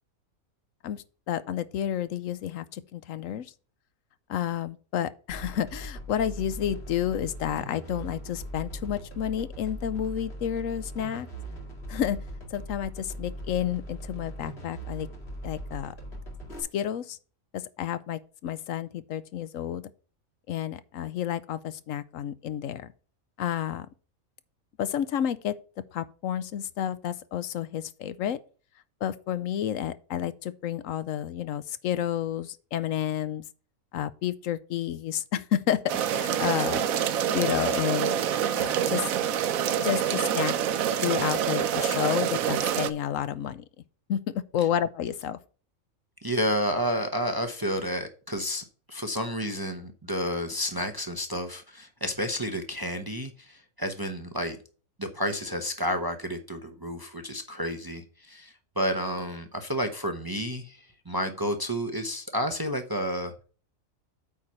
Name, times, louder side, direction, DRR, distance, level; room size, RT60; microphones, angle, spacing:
voice 1, 0.8-3.5 4.3-11.3 11.9-12.2 12.5-15.1 15.4-15.9 16.6-17.2 17.5-19.8 20.5-22.9 23.4-23.9 24.8-25.5 25.9-28.4 29.0-33.4 33.9-36.9 37.3-38.1 38.5-39.1 39.8-40.5 41.0-43.6 44.1-45.4, left 10 dB, 75° left, 1.0 m, -30 dB
sound 1, 5.3-16.6, right 1 dB, 50° left, 2.5 m, -40 dB
sound 2, 35.9-42.9, right 9 dB, 85° right, 1.1 m, -26 dB
voice 2, 46.2-54.6 55.0-63.3, equal, 20° right, 0.7 m, -31 dB
8.6 x 4.6 x 5.5 m
omnidirectional pair, 1.4 m